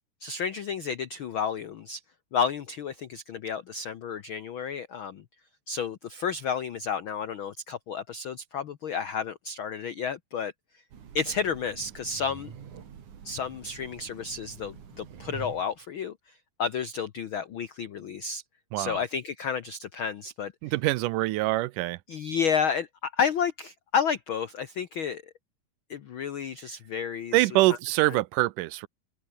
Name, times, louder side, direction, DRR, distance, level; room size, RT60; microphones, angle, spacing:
voice 1, 0.2-2.0 2.3-5.2 5.7-10.5 11.1-12.5 13.2-16.1 16.6-18.4 18.8-20.5 22.1-25.2 25.9-27.5, left 6 dB, 90° left, 1.1 m, -31 dB
Train, 10.9-15.8, right 8 dB, 65° right, 4.1 m, -46 dB
voice 2, 20.6-22.0 27.3-28.9, right 18 dB, 85° right, 2.2 m, -24 dB
open air
omnidirectional pair, 3.8 m